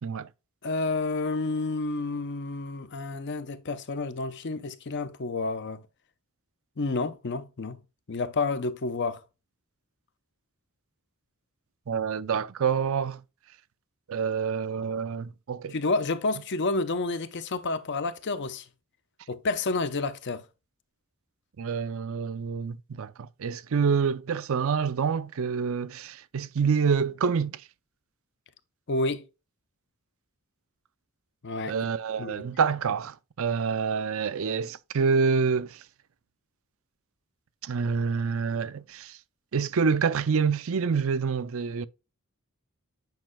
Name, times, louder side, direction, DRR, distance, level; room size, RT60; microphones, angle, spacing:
voice 1, 0.6-5.8 6.8-7.8 8.1-9.2 15.7-18.6 19.3-20.4 28.9-29.2 31.4-31.7 32.2-32.5, left 3 dB, 55° left, 0.7 m, -30 dB
voice 2, 11.9-13.2 14.1-15.7 21.6-27.6 31.7-35.8 37.6-39.2 39.5-41.9, right 6 dB, 65° right, 0.5 m, -27 dB
9.1 x 5.4 x 2.2 m
head